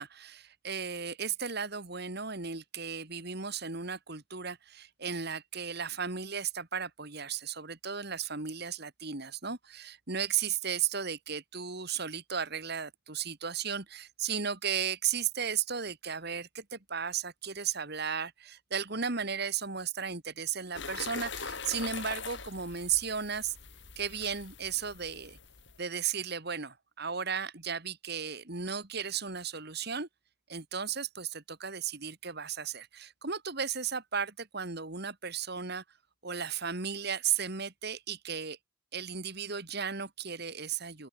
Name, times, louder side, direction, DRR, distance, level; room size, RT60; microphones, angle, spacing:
voice 1, 0.0-23.6 24.0-25.4 25.8-30.1 30.5-35.8 36.2-38.6 38.9-41.1, right 7 dB, 50° right, 2.1 m, -35 dB
sound 1, 20.7-25.8, left 5 dB, 60° left, 5.9 m, -42 dB
open air
head